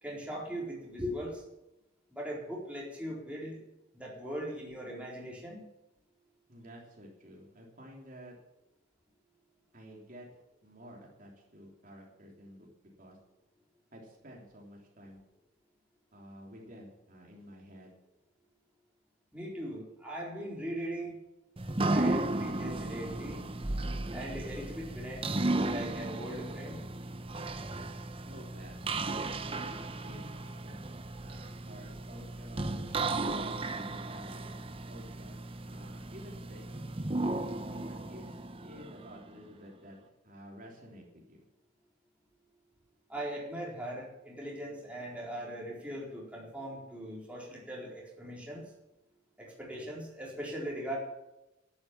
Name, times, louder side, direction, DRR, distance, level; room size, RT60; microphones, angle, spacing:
voice 1, 0.0-1.4 2.1-3.6 3.9-5.6 19.3-21.2 21.8-23.5 24.1-26.8 43.1-48.6 49.4-51.0, equal, 5° right, -4 dB, 4.2 m, -40 dB
voice 2, 6.5-8.3 9.7-10.3 10.6-12.7 13.0-13.2 13.9-15.2 16.1-17.9 27.3-27.6 28.2-28.9 29.6-30.9 31.2-32.9 33.7-34.6 34.9-35.4 35.6-36.7 37.7-40.0 40.2-41.4, equal, 45° right, -1 dB, 3.3 m, -51 dB
sound 1, 21.6-39.4, right 2 dB, 30° right, 0.8 m, -35 dB
12.0 x 11.5 x 7.2 m, 0.93 s
head